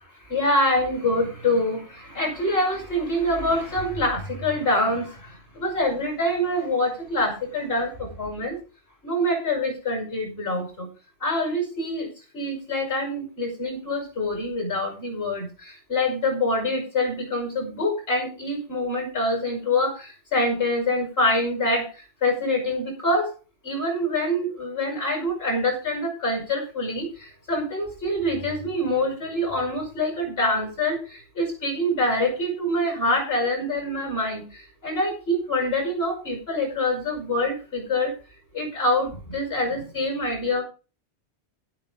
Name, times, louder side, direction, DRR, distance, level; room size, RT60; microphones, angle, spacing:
voice 1, 0.3-8.6 9.0-10.9 11.2-12.1 12.3-23.3 23.6-38.1 38.5-40.6, left 1 dB, 60° left, 3 dB, 5.7 m, -25 dB
12.0 x 11.0 x 3.8 m, 0.33 s
omnidirectional pair, 1.1 m